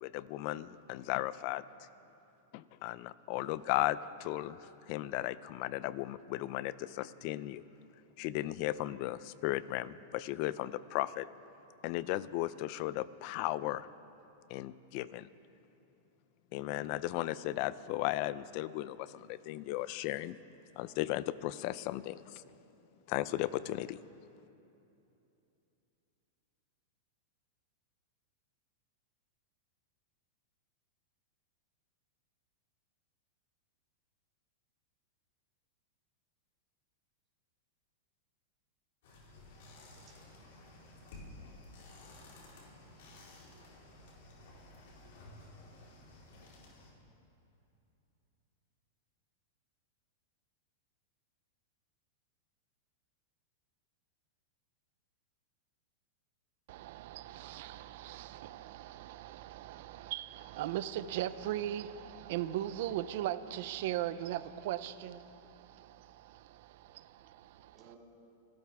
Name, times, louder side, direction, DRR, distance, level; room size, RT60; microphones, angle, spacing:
voice 1, 0.0-1.9 2.5-7.6 8.2-11.3 11.8-13.9 14.5-15.3 16.5-20.4 20.8-22.4 23.1-24.0, left 15 dB, 45° left, 0.4 m, -36 dB
sound 1, 39.0-46.9, left 2 dB, 70° left, 4.0 m, -54 dB
voice 2, 40.1-41.6 45.8-46.2 67.6-68.0, right 7 dB, 25° right, 2.8 m, -65 dB
voice 3, 56.7-67.8, right 12 dB, 60° right, 0.6 m, -39 dB
27.0 x 13.0 x 3.6 m
supercardioid pair, 150°, 0 cm